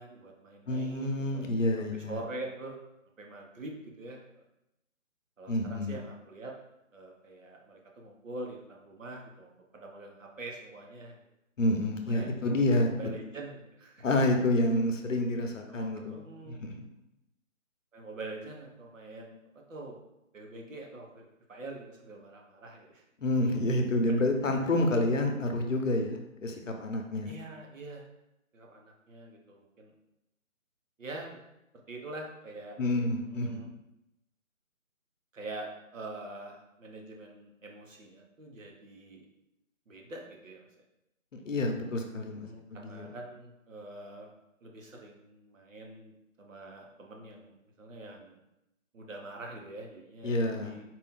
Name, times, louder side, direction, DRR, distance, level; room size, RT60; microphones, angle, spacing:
voice 1, 0.0-1.5 1.9-2.8 3.2-4.4 5.4-6.5 6.9-11.2 12.1-14.0 15.7-16.6 17.9-19.4 19.7-20.0 20.3-23.0 27.2-28.1 28.5-29.9 31.0-31.4 31.9-32.8 33.2-33.7 35.3-39.3 39.9-40.7 42.4-44.3 44.6-48.4 48.9-50.8, right 2 dB, 65° right, 0 dB, 1.0 m, -45 dB
voice 2, 0.7-2.2 5.5-6.0 11.6-12.9 14.0-16.7 23.2-27.3 32.8-33.6 41.3-43.1 50.2-50.8, left 1 dB, 65° left, 3 dB, 0.8 m, -29 dB
4.5 x 2.6 x 3.6 m, 0.88 s
figure-of-eight pair, 165°, 41 cm